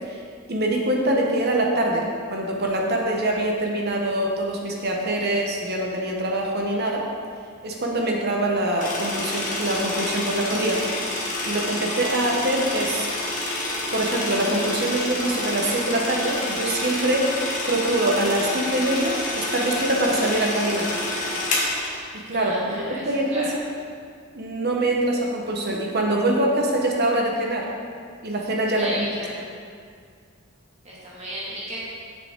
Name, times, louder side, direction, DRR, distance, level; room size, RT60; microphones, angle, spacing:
voice 1, 0.5-2.0 2.3-7.1 7.6-10.8 11.4-13.1 13.9-17.3 17.6-20.9 22.1-23.6 24.3-27.7 28.2-29.1, right 1 dB, 45° right, -1 dB, 1.1 m, -24 dB
sound 1, 8.8-22.0, left 2 dB, 35° left, 1.4 m, -28 dB
voice 2, 22.3-23.5 28.8-29.4 30.8-31.8, equal, 30° right, -8 dB, 2.1 m, -34 dB
7.1 x 7.0 x 4.6 m, 2.1 s
head